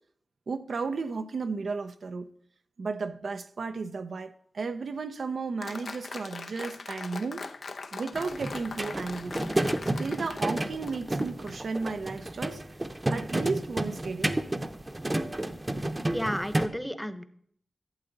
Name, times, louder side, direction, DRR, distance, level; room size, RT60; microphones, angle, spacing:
voice 1, 0.5-2.3 2.8-7.4 7.9-9.4 10.0-12.6 13.1-14.4, right 4 dB, 75° right, 0.5 m, -34 dB
Applause, 5.6-11.5, left 4 dB, 80° left, 0.7 m, -41 dB
sound 1, 8.1-16.7, right 1 dB, 25° right, 0.8 m, -31 dB
voice 2, 16.1-17.2, equal, ahead, 0.8 m, -32 dB
12.0 x 7.8 x 3.9 m
cardioid pair, 45°, 0 cm